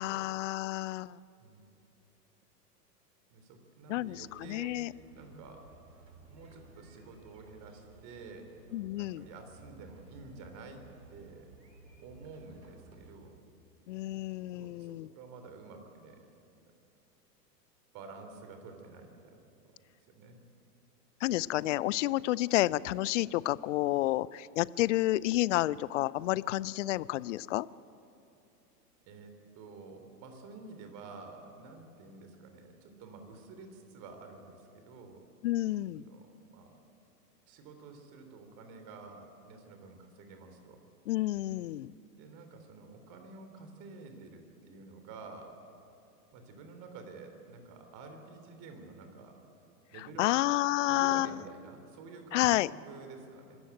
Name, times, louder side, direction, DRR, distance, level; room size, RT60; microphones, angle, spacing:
voice 1, 0.0-1.2 3.9-4.9 8.7-9.3 13.9-15.1 21.2-27.7 35.4-36.1 41.1-41.9 50.0-51.3 52.3-52.7, left 16 dB, 50° left, 21 dB, 0.5 m, -30 dB
voice 2, 1.4-1.7 3.3-4.7 5.1-5.6 6.2-8.5 9.0-10.8 11.1-11.5 12.0-13.4 14.5-16.3 17.9-19.4 20.1-20.4 29.1-35.2 35.9-36.7 37.5-40.8 42.2-45.5 46.3-49.4 49.9-50.3 50.9-52.6 52.9-53.6, right 4 dB, 40° right, 6 dB, 3.6 m, -50 dB
sound 1, 4.1-13.1, right 3 dB, 85° right, 3.7 m, -56 dB
24.5 x 13.5 x 9.2 m, 2.7 s
figure-of-eight pair, 100°, 49 cm